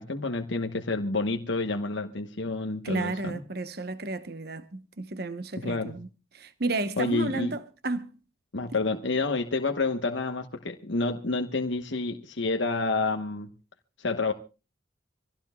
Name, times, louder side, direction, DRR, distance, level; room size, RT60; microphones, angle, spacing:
voice 1, 0.0-3.4 5.6-6.0 7.0-7.5 8.5-13.5 14.0-14.3, left 3 dB, 70° left, 1.2 m, -29 dB
voice 2, 2.8-6.1 6.3-8.1, right 2 dB, 50° right, 1.1 m, -32 dB
26.0 x 16.5 x 2.3 m
head